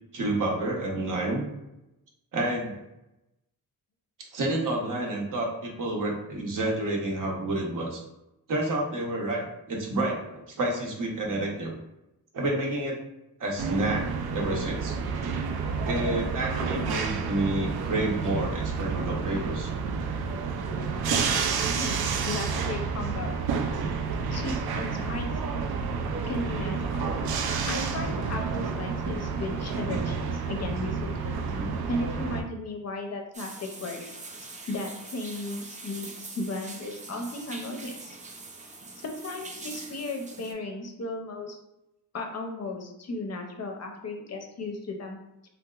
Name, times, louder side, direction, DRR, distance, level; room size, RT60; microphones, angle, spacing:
voice 1, 0.1-1.4 2.3-2.8 4.2-8.0 8.5-11.7 12.3-13.0 13.4-15.0 15.8-19.7 31.4-31.7, right 1 dB, 60° right, -1 dB, 0.8 m, -29 dB
sound 1, 13.6-32.4, right 5 dB, 85° right, 0.5 m, -30 dB
voice 2, 21.7-23.3 24.3-25.6 26.2-27.1 27.6-31.4 31.9-34.1 34.4-38.2 38.9-41.6 42.1-45.2, left 2 dB, 45° left, 3 dB, 0.5 m, -35 dB
sound 2, 33.3-40.5, right 3 dB, 20° right, 0.3 m, -43 dB
3.4 x 2.8 x 2.3 m, 0.90 s
wide cardioid pair, 145°, 36 cm